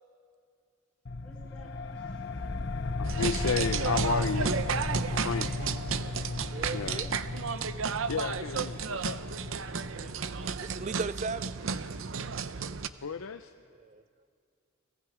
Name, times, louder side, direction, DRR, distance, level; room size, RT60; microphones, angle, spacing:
sound 1, 1.1-11.2, left 2 dB, 50° left, 0.7 m, -35 dB
voice 1, 1.2-2.8 5.3-5.6 6.8-7.1, equal, 5° left, -6 dB, 5.8 m, -54 dB
voice 2, 3.0-4.6 5.1-5.7 6.7-7.1 8.1-9.2 13.0-13.5, left 5 dB, 90° left, 8 dB, 0.6 m, -33 dB
sound 2, 3.1-12.9, right 6 dB, 75° right, 0.7 m, -33 dB
voice 3, 6.5-7.1 10.0-10.1 10.4-11.5 13.8-14.0, right 4 dB, 35° right, 15 dB, 0.4 m, -37 dB
30.0 x 22.0 x 5.0 m, 2.3 s
head